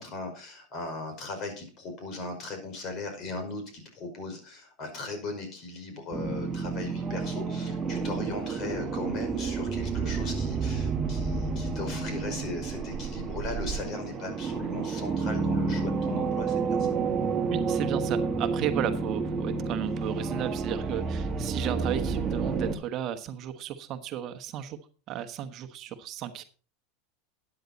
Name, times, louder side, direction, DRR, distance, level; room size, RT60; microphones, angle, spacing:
voice 1, 0.0-16.9, left 3 dB, 40° left, 6 dB, 5.3 m, -38 dB
sound 1, 6.1-22.7, right 4 dB, 20° right, 2.0 m, -30 dB
voice 2, 17.5-24.8 25.1-26.4, right 10 dB, 40° right, 7 dB, 1.2 m, -34 dB
13.0 x 9.7 x 4.1 m, 0.37 s
supercardioid pair, 125°, 0 cm